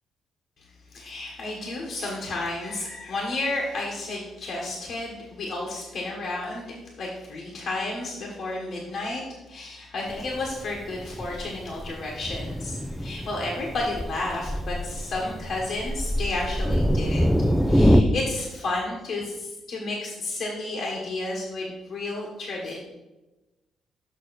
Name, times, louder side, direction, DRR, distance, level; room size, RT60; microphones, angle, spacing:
voice 1, 0.6-6.7 7.0-17.3 17.6-22.8, left 2 dB, 60° left, -2 dB, 1.4 m, -32 dB
Thunder, 10.1-18.0, equal, ahead, 0.5 m, -25 dB
6.4 x 6.1 x 4.2 m, 1.1 s
cardioid pair, 90°, 0 cm